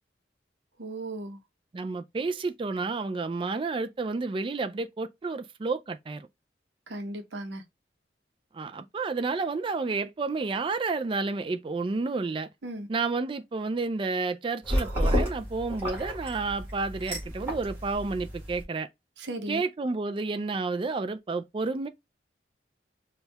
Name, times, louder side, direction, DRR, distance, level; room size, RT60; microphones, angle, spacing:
voice 1, 0.8-1.4 6.9-7.6 12.6-12.9 19.2-19.6, right 1 dB, 80° right, 0.8 m, -36 dB
voice 2, 1.7-6.3 8.5-12.5 12.9-18.9 19.5-21.9, right 3 dB, 30° right, 0.3 m, -30 dB
sound 1, 14.6-18.6, equal, 15° right, 1.9 m, -31 dB
4.4 x 2.3 x 3.3 m
head